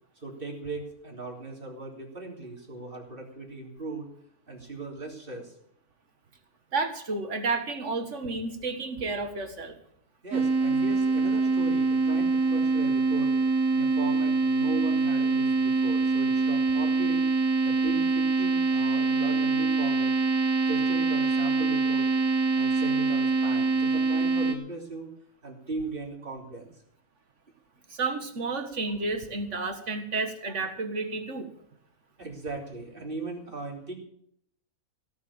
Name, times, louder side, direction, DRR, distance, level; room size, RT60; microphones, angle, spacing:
voice 1, 0.2-4.1 4.5-5.6 10.2-13.3 13.7-17.3 17.6-20.1 20.7-22.1 22.5-25.1 25.4-26.7 32.2-33.9, right 3 dB, 35° right, -1 dB, 3.5 m, -38 dB
voice 2, 6.7-9.8 27.9-31.5, right 3 dB, 50° right, 6 dB, 2.0 m, -31 dB
sound 1, 10.3-24.5, right 3 dB, 80° right, 2.5 m, -24 dB
16.5 x 7.2 x 8.6 m, 0.70 s
omnidirectional pair, 1.6 m